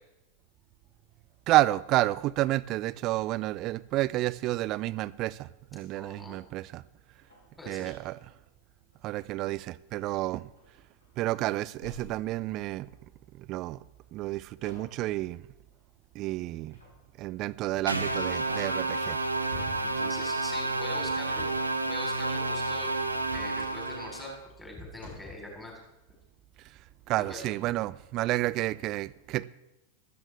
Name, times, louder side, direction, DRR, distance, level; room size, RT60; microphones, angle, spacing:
voice 1, 1.5-6.8 7.7-8.2 9.0-10.5 11.2-12.9 13.3-13.8 14.1-15.4 16.1-16.8 17.2-19.8 26.6-26.8 27.1-29.4, right 17 dB, 40° right, 0.4 m, -30 dB
voice 2, 5.9-6.4 7.6-7.9 19.8-21.5 21.8-22.9 23.3-25.8 27.2-27.5, left 2 dB, 5° left, 3.6 m, -43 dB
sound 1, 7.2-8.4 8.9-9.3 9.9-10.1 10.5-11.4 11.8-13.3 14.6-15.1 16.7-17.2 17.6-17.7 18.2-19.0 19.5-20.1 21.3-21.8 23.0-23.8 24.5-24.6 25.0-25.5, left 2 dB, 75° left, 4.2 m, -50 dB
sound 2, 17.9-24.4, right 2 dB, 85° right, 1.0 m, -30 dB
16.0 x 13.5 x 3.4 m
figure-of-eight pair, 90°, 0 cm